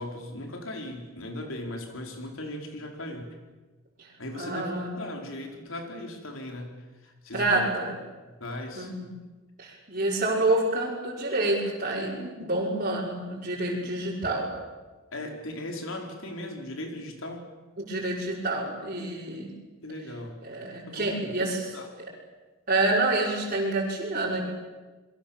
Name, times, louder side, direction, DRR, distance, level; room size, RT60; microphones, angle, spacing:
voice 1, 0.0-3.3 4.2-6.7 7.0-7.7 8.4-8.9 15.1-17.5 19.8-20.4 20.8-21.5 21.7-21.9, left 1 dB, 75° left, 3 dB, 4.6 m, -38 dB
voice 2, 4.4-4.9 7.3-7.9 8.8-9.1 9.6-14.5 17.8-19.5 20.4-21.7 22.7-24.4, right 2 dB, 40° right, -7 dB, 5.8 m, -28 dB
28.5 x 22.0 x 7.4 m, 1.2 s
head